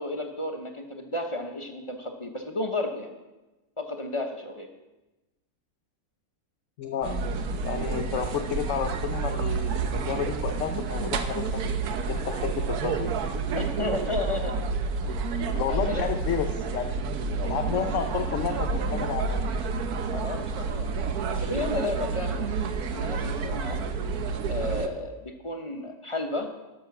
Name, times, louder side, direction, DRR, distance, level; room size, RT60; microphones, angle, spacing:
voice 1, 0.0-3.1 3.8-4.7 13.5-14.5 15.1-15.2 15.7-16.1 20.1-20.9 21.3-22.4 22.9-23.8 24.5-26.5, left 2 dB, 25° left, 4 dB, 0.8 m, -32 dB
voice 2, 6.8-7.2 7.6-11.8 12.1-13.2 15.5-17.0 17.4-19.5, left 8 dB, 60° left, 6 dB, 1.0 m, -31 dB
sound 1, 7.0-24.9, right 4 dB, 80° right, 1.3 m, -29 dB
12.5 x 6.5 x 6.0 m, 1.1 s
omnidirectional pair, 1.6 m